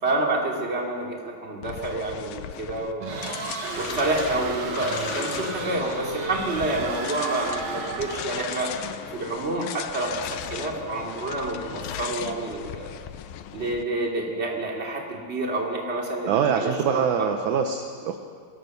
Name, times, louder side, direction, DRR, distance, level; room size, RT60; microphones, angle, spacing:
voice 1, 0.0-3.1 3.8-8.7 9.1-12.9 13.5-17.3, right 2 dB, 20° right, -1 dB, 2.5 m, -28 dB
sound 1, 1.6-13.8, left 10 dB, 80° left, 2.5 m, -37 dB
sound 2, 3.0-8.4, right 4 dB, 55° right, 2.8 m, -33 dB
voice 2, 16.3-18.2, right 7 dB, 70° right, 6 dB, 2.0 m, -24 dB
23.5 x 17.5 x 6.7 m, 2.1 s
omnidirectional pair, 4.2 m